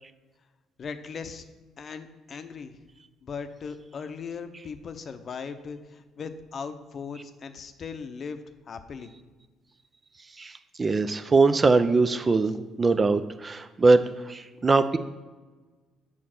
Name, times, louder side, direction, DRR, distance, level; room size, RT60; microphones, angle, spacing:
voice 1, 0.8-1.4 1.8-2.8 3.2-8.4 8.7-9.1, left 5 dB, 50° left, 9 dB, 0.7 m, -38 dB
voice 2, 10.8-15.0, right 3 dB, 30° right, 11 dB, 0.5 m, -22 dB
6.5 x 4.0 x 6.0 m, 1.3 s
supercardioid pair, 65°, 0 cm